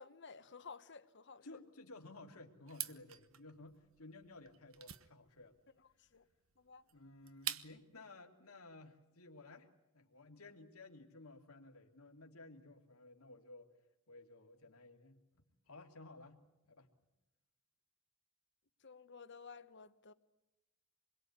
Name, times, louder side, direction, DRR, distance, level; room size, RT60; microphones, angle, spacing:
voice 1, 0.0-1.6 6.0-6.3 6.6-6.8 18.8-20.1, left 5 dB, 55° left, 1.3 m, -54 dB
voice 2, 1.4-5.5 6.9-9.7 9.9-13.7 14.1-16.4 16.7-16.9, left 2 dB, 80° left, 2.7 m, -56 dB
sound 1, 2.7-8.0, right 12 dB, 65° right, 1.1 m, -47 dB
27.0 x 22.0 x 9.6 m
head